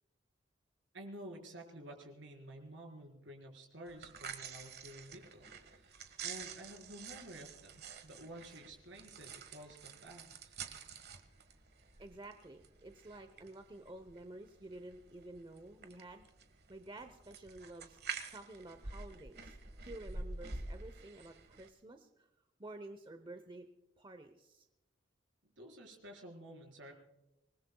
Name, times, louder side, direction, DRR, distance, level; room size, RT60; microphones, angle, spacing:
voice 1, 0.9-10.5 25.6-26.9, right 1 dB, 70° right, 2 dB, 4.5 m, -51 dB
sound 1, 3.9-21.7, right 4 dB, 50° right, 1.5 m, -48 dB
voice 2, 11.8-16.3 16.7-18.0 18.3-22.3 22.6-23.7 24.0-24.7, right 2 dB, 25° right, 8 dB, 0.8 m, -51 dB
26.0 x 20.0 x 2.3 m, 0.97 s
head